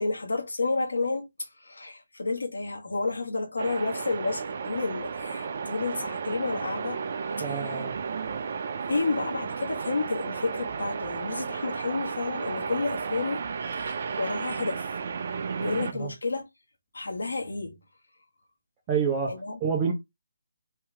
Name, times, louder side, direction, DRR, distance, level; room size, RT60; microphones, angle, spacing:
voice 1, 0.0-7.8 8.9-14.9 15.6-16.5 16.9-17.8 19.3-19.6, left 3 dB, 75° left, 1.5 m, -31 dB
sound 1, 3.6-15.9, right 5 dB, 50° right, 0.6 m, -33 dB
voice 2, 7.4-8.0 15.9-16.1 18.9-19.9, right 6 dB, 20° right, 1.0 m, -28 dB
4.4 x 2.9 x 3.6 m
figure-of-eight pair, 150°, 0 cm